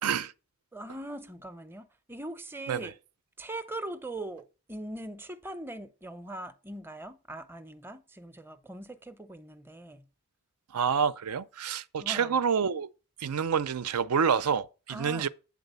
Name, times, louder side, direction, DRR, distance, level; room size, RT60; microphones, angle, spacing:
voice 1, 0.0-0.3 2.7-2.9 10.7-12.9 13.2-15.3, right 7 dB, 85° right, 0.5 m, -28 dB
voice 2, 0.7-2.9 3.4-10.0 12.0-12.4 14.9-15.3, right 1 dB, 10° right, 0.5 m, -41 dB
8.8 x 4.0 x 6.7 m
head